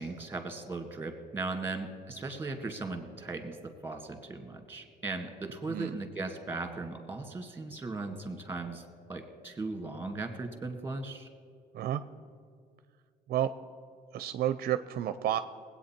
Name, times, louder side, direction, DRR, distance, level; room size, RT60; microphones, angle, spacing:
voice 1, 0.0-8.8 9.1-11.3, right 3 dB, 15° right, 5 dB, 1.9 m, -38 dB
voice 2, 5.7-6.0 11.7-12.0 13.3-13.5 14.1-15.4, right 11 dB, 65° right, 12 dB, 0.5 m, -30 dB
20.0 x 8.7 x 4.4 m, 2.2 s
cardioid pair, 110°, 17 cm